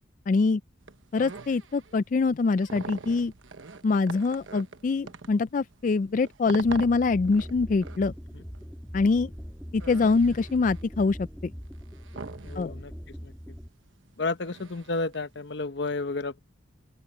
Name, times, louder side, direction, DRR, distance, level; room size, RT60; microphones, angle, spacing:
voice 1, 0.3-0.6 1.1-3.3 3.8-8.1 8.9-9.3 9.7-11.5 12.6-12.7, left 4 dB, 40° left, 0.3 m, -24 dB
sound 1, 0.8-15.6, right 4 dB, 80° right, 1.1 m, -44 dB
sound 2, 6.6-13.7, equal, ahead, 2.0 m, -41 dB
voice 2, 12.4-13.3 14.2-16.4, left 3 dB, 60° left, 0.9 m, -32 dB
open air
head